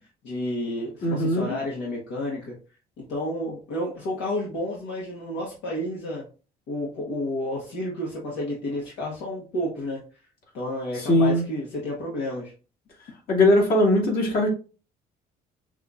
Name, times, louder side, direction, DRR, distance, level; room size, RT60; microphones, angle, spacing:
voice 1, 0.2-2.5 3.0-6.2 6.7-10.0 10.5-12.5, left 1 dB, 85° left, -4 dB, 1.5 m, -31 dB
voice 2, 1.0-1.6 11.0-11.4 13.3-14.5, left 1 dB, 60° left, -2 dB, 2.5 m, -20 dB
6.3 x 3.3 x 2.6 m, 0.35 s
cardioid pair, 95°, 17 cm